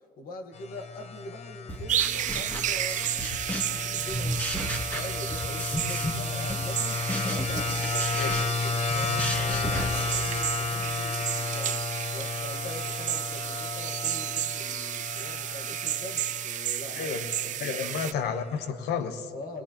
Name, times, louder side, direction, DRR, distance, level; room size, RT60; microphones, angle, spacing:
voice 1, 0.0-11.8 12.1-17.2 17.4-18.0 19.3-19.6, left 2 dB, 60° left, 4 dB, 1.4 m, -43 dB
sound 1, 0.5-18.7, left 5 dB, 40° left, 0.7 m, -34 dB
sound 2, 1.7-3.8 4.1-6.2 6.5-10.8, equal, 10° left, 1.6 m, -34 dB
sound 3, 1.9-18.1, right 11 dB, 50° right, 0.4 m, -32 dB
voice 2, 7.9-8.3 16.9-17.2 17.6-19.3, left 6 dB, 80° left, 9 dB, 1.0 m, -31 dB
20.0 x 17.5 x 2.9 m, 2.8 s
cardioid pair, 110°, 17 cm